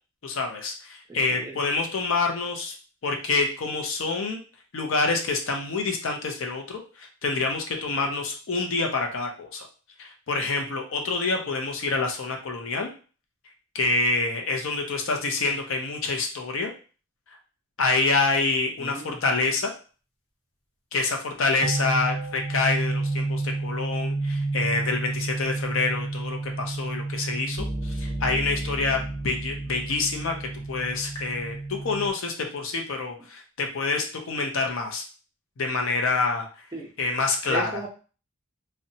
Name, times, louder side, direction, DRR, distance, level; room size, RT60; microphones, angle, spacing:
voice 1, 0.2-2.7 3.0-4.4 4.7-9.7 10.0-12.9 13.7-16.7 17.8-19.7 20.9-35.0 35.6-36.5 37.0-37.7, left 3 dB, 65° left, 3 dB, 0.5 m, -27 dB
voice 2, 1.1-1.6 18.8-19.2 36.7-36.9 37.5-37.9, right 3 dB, 15° right, -1 dB, 0.4 m, -34 dB
sound 1, 21.6-32.1, right 2 dB, 85° left, 0.9 m, -30 dB
2.7 x 2.1 x 2.7 m, 0.37 s
head